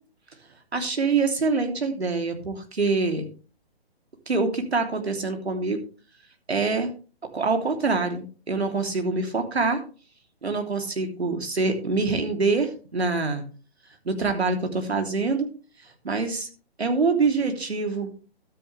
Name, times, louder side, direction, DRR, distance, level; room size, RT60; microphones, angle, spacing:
voice 1, 0.7-3.2 4.3-5.8 6.5-6.9 7.3-9.8 10.4-13.4 14.0-15.5 16.0-16.5 16.8-18.1, right 4 dB, 80° right, 4 dB, 3.1 m, -25 dB
12.5 x 9.1 x 3.3 m, 0.35 s
figure-of-eight pair, 135°, 31 cm